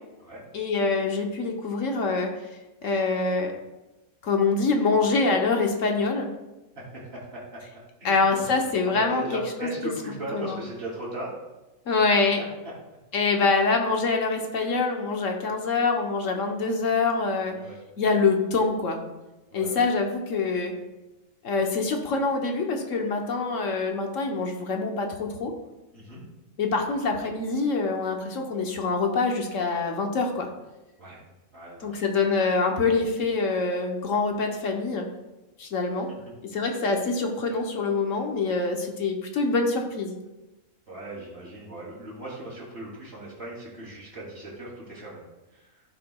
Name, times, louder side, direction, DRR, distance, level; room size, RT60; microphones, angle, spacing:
voice 1, 0.5-2.3 2.8-3.5 4.2-6.3 8.0-9.2 9.6-9.7 10.3-10.6 11.9-12.4 13.1-17.5 18.0-19.0 19.5-20.7 21.4-25.5 26.6-30.5 31.8-35.0 35.6-36.1 36.4-40.2, left 4 dB, 70° left, 3 dB, 1.3 m, -25 dB
voice 2, 6.8-7.4 8.0-8.4 8.8-11.3 17.5-17.8 19.5-19.8 25.9-26.2 31.0-31.2 31.5-32.0 40.9-45.2 45.5-45.8, right 1 dB, 45° right, -5 dB, 3.0 m, -38 dB
15.5 x 5.7 x 2.3 m, 1.0 s
omnidirectional pair, 1.4 m